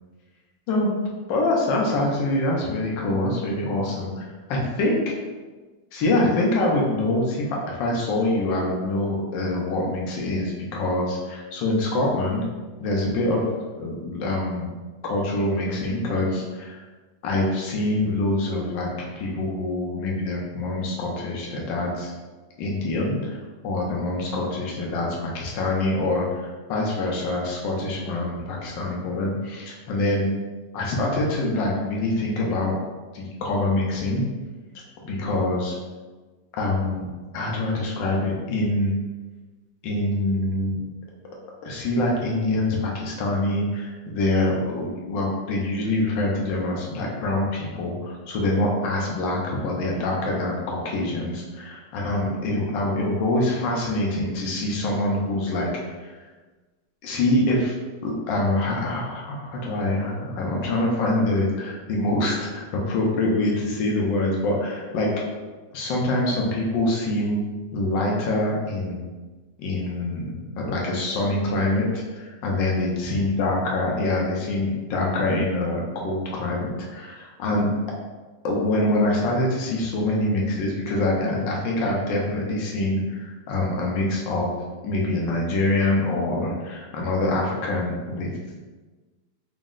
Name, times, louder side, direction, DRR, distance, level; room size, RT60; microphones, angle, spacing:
voice 1, 1.3-4.2 4.5-5.1 5.9-12.4 12.8-13.4 13.8-14.7 15.0-16.8 17.2-22.1 22.6-23.4 23.6-30.3 30.7-32.7 33.1-34.2 35.0-35.8 36.6-37.1 37.3-38.9 39.8-40.8 41.6-55.7 56.0-56.2 57.0-57.7 58.0-65.1 65.7-67.4 67.7-69.1 69.6-77.7 78.4-84.5 84.8-88.3, left 2 dB, 80° left, -2 dB, 1.4 m, -25 dB
4.2 x 2.0 x 3.6 m, 1.3 s
omnidirectional pair, 2.0 m